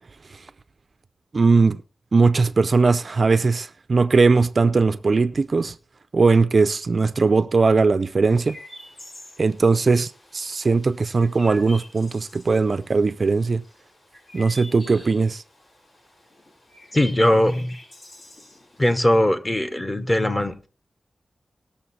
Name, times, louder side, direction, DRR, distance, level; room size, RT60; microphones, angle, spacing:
voice 1, 1.3-1.8 2.1-5.7 6.1-8.6 9.4-13.6 14.3-15.4, right 4 dB, 45° right, 0.4 m, -19 dB
Chirp tweet, 8.3-18.9, left 1 dB, 70° left, 6.9 m, -46 dB
voice 2, 16.9-17.7 18.8-20.7, left 1 dB, 20° left, 1.1 m, -20 dB
19.0 x 7.0 x 4.1 m
wide cardioid pair, 125°, 0 cm